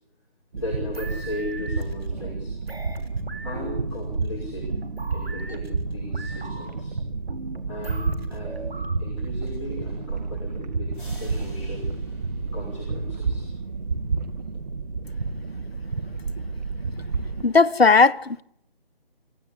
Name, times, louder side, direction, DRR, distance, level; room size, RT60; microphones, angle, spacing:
voice 1, 0.5-2.5 3.4-4.7 5.1-6.9 7.7-10.9 11.2-12.3 12.5-13.5, left 2 dB, 30° left, 6.3 m, -37 dB
sound 1, 0.5-17.4, right 4 dB, 45° right, 2.4 m, -30 dB
sound 2, 0.6-8.9, right 2 dB, 75° right, 3.5 m, -41 dB
sound 3, 10.9-13.7, equal, 10° left, 5.7 m, -51 dB
voice 2, 17.4-18.4, left 4 dB, 75° left, 0.9 m, -17 dB
27.5 x 16.0 x 8.5 m
figure-of-eight pair, 160°, 31 cm